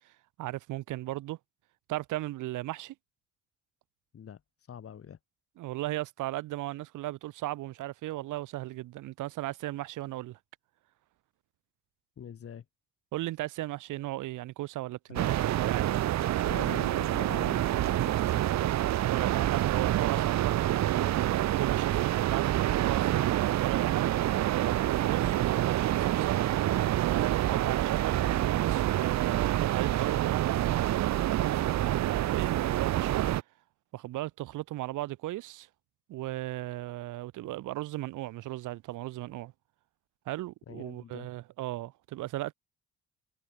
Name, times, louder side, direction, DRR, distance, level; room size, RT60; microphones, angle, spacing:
voice 1, 0.4-1.4 1.9-2.9 5.6-10.4 13.1-16.0 19.1-20.7 21.3-24.1 24.3-30.6 31.3-33.3 33.9-35.7 36.1-39.5 40.2-42.5, right 16 dB, 85° right, 1.3 m, -36 dB
voice 2, 4.7-5.2 12.2-12.6 15.1-15.3 15.8-16.0 16.4-18.3 40.7-41.3, left 8 dB, 50° left, 2.3 m, -44 dB
sound 1, 15.2-33.4, right 13 dB, 65° right, 0.8 m, -27 dB
cardioid pair, 90°, 30 cm